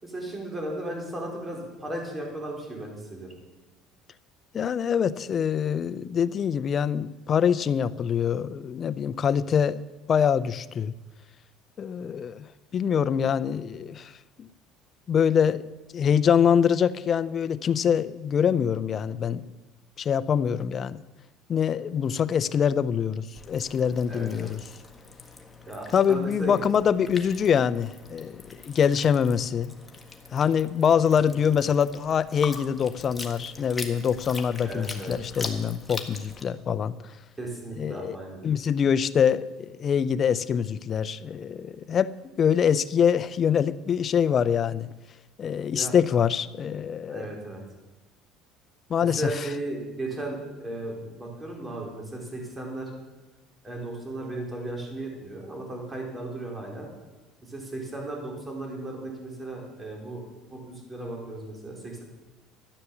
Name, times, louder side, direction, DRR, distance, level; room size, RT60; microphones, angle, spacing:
voice 1, 0.0-3.3 24.1-24.5 25.7-26.6 34.6-35.1 37.4-38.4 45.7-46.0 47.1-47.6 49.0-52.9 53.6-56.9 57.5-60.2 60.5-62.0, right 1 dB, 15° right, 0 dB, 4.3 m, -35 dB
voice 2, 4.5-9.8 10.1-10.9 11.8-12.5 12.7-14.1 14.4-14.5 15.1-15.6 15.9-19.5 20.0-21.0 21.5-24.6 25.9-29.7 30.3-36.9 37.8-38.2 38.4-42.1 42.4-44.9 45.4-47.3 48.9-49.5, left 7 dB, 40° left, 16 dB, 0.6 m, -24 dB
sound 1, 23.3-36.4, left 3 dB, 15° left, 1.7 m, -42 dB
13.0 x 9.6 x 7.2 m, 1.1 s
cardioid pair, 115°, 0 cm